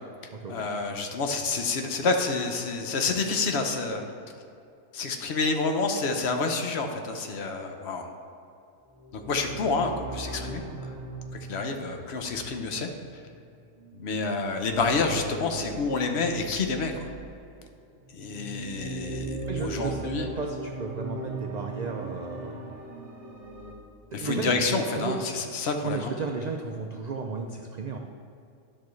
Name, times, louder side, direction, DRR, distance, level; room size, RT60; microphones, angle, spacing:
voice 1, 0.5-4.1 4.9-8.1 9.1-10.6 11.5-12.9 13.9-17.1 18.1-20.3 24.1-26.1, left 3 dB, 60° left, 4 dB, 0.9 m, -28 dB
sound 1, 8.9-17.4 18.0-23.7, right 2 dB, 35° right, 0.8 m, -39 dB
voice 2, 19.5-22.6 24.2-25.2 25.8-28.0, right 4 dB, 90° right, 2 dB, 0.3 m, -34 dB
10.5 x 6.2 x 3.1 m, 2.6 s
omnidirectional pair, 1.4 m